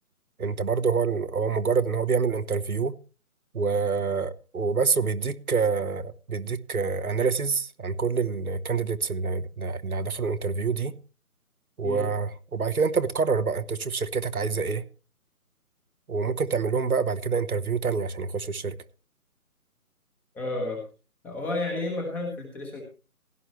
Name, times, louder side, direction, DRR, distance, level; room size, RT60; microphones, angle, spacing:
voice 1, 0.4-3.0 3.5-11.0 11.8-14.8 16.1-18.7, right 5 dB, 75° right, 1.2 m, -26 dB
voice 2, 20.3-20.8 21.2-22.8, left 2 dB, 5° left, 1.0 m, -31 dB
16.5 x 11.5 x 3.1 m
figure-of-eight pair, 150°, 44 cm